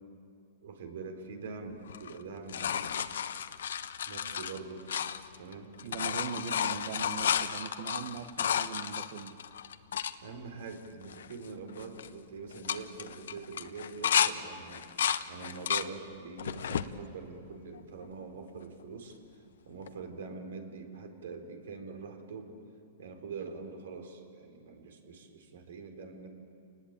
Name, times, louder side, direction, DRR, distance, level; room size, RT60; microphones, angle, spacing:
voice 1, 0.6-2.8 4.1-4.9 5.4-5.7 6.7-6.8 10.2-19.2 19.7-22.6 23.0-26.3, right 4 dB, 80° right, 5 dB, 4.0 m, -44 dB
sound 1, 1.9-5.5 5.8-10.1 10.7-10.8 11.0-11.5 11.8-12.1 12.5-14.3 14.7-15.9 16.4-16.9 17.5-18.3 19.9-20.0, left 8 dB, 85° left, 1.0 m, -32 dB
voice 2, 5.8-9.4, right 8 dB, 60° right, 5 dB, 1.6 m, -40 dB
29.0 x 19.5 x 8.9 m, 2.4 s
hypercardioid pair, 145°, 0 cm